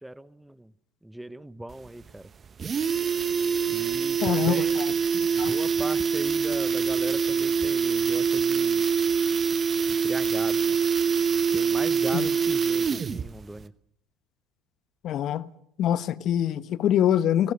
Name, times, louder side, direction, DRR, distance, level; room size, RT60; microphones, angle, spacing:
voice 1, 0.0-0.7 1.0-2.3 3.7-4.8 5.3-8.8 10.0-10.8 11.5-13.7, right 1 dB, 5° right, 1.0 m, -38 dB
sound 1, 1.7-1.8 2.1-2.2 2.5-13.3 13.6-13.7, right 6 dB, 30° right, 1.2 m, -25 dB
voice 2, 4.2-4.9 5.4-5.5 12.1-12.3 15.0-15.5 15.8-17.5, left 10 dB, 50° left, 1.2 m, -24 dB
29.5 x 16.0 x 6.9 m
supercardioid pair, 115°, 0 cm